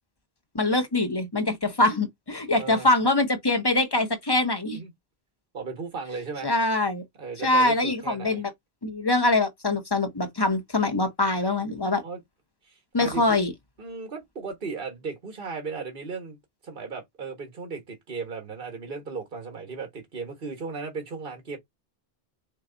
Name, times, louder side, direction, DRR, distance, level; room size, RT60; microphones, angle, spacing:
voice 1, 0.5-4.8 6.4-7.0 7.4-8.5 8.8-12.0 12.9-13.5, left 2 dB, 25° left, 0.9 m, -24 dB
voice 2, 5.5-6.5 7.2-8.4 12.0-12.2 12.7-13.4 13.8-16.4 16.6-21.6, right 4 dB, 60° right, 1.5 m, -36 dB
4.6 x 2.3 x 3.8 m
omnidirectional pair, 1.0 m